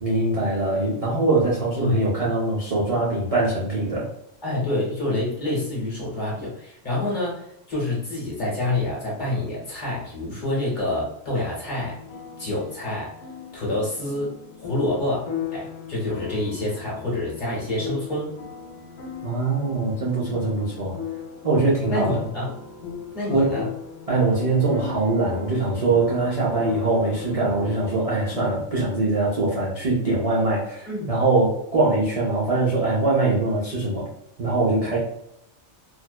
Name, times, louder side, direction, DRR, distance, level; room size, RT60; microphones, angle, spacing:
voice 1, 0.0-4.1 19.2-20.9 21.4-22.2 23.3-23.5 24.1-34.1 34.4-35.0, right 2 dB, 60° right, -6 dB, 0.3 m, -22 dB
voice 2, 4.4-12.0 12.4-13.1 13.5-14.3 14.6-18.4 21.9-22.5 23.1-23.7 30.9-31.2, left 1 dB, 40° left, -5 dB, 1.0 m, -27 dB
sound 1, 11.8-28.5, left 7 dB, 80° left, 1.0 m, -37 dB
2.6 x 2.1 x 2.2 m, 0.80 s
omnidirectional pair, 1.4 m